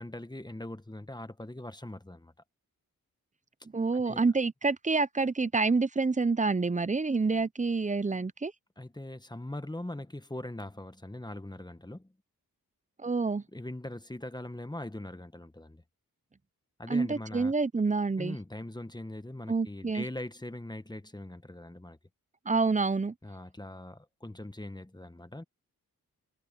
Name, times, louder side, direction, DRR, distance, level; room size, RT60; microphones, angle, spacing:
voice 1, 0.0-2.3 3.9-4.2 8.8-12.1 13.5-15.8 16.8-17.5 18.2-22.0 23.2-25.4, left 1 dB, 10° left, 1.4 m, -41 dB
voice 2, 3.7-8.5 13.0-13.4 16.9-18.4 19.5-20.0 22.5-23.1, right 4 dB, 20° right, 0.7 m, -27 dB
cardioid pair, 50°, 36 cm